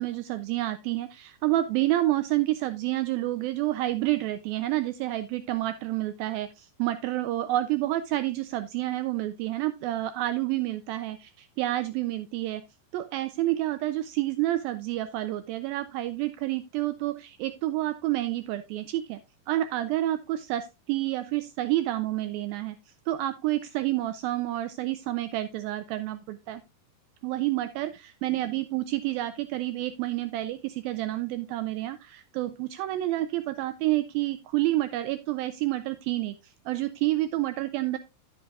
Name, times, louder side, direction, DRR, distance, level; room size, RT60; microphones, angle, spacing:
voice 1, 0.0-12.6 12.9-19.2 19.5-26.6 27.2-38.0, right 15 dB, 80° right, 11 dB, 2.2 m, -29 dB
11.5 x 7.8 x 2.3 m, 0.27 s
omnidirectional pair, 4.5 m